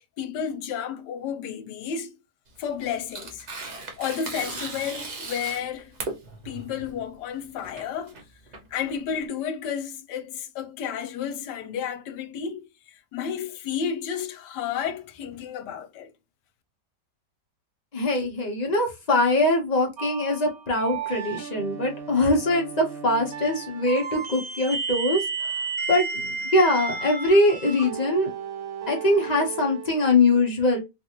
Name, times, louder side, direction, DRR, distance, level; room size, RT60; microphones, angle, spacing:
voice 1, 0.0-2.2 2.6-3.5 4.0-6.0 6.4-8.2 8.7-16.1, left 7 dB, 85° left, 1.2 m, -32 dB
Tearing, 2.5-9.2, right 3 dB, 50° right, 0.5 m, -38 dB
voice 2, 17.9-25.2 25.9-28.3 28.9-30.8, left 2 dB, 35° left, 0.7 m, -22 dB
sound 1, 20.0-30.2, right 5 dB, 90° right, 1.8 m, -33 dB
3.3 x 2.5 x 2.8 m
omnidirectional pair, 1.8 m